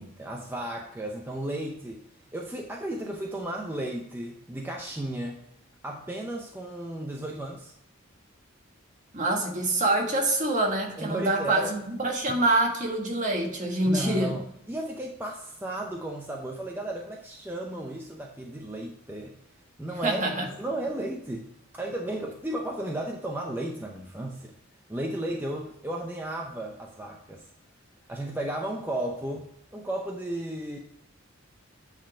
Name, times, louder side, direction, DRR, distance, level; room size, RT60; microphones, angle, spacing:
voice 1, 0.0-2.0 2.3-5.4 5.8-7.7 11.0-11.7 12.3-12.4 13.9-19.4 19.8-20.2 20.6-24.5 24.9-27.5 28.1-30.8, right 1 dB, 10° right, 0 dB, 0.6 m, -34 dB
voice 2, 9.1-14.3 20.0-20.5, right 2 dB, 40° right, 1 dB, 1.6 m, -26 dB
9.0 x 4.0 x 4.9 m, 0.79 s
head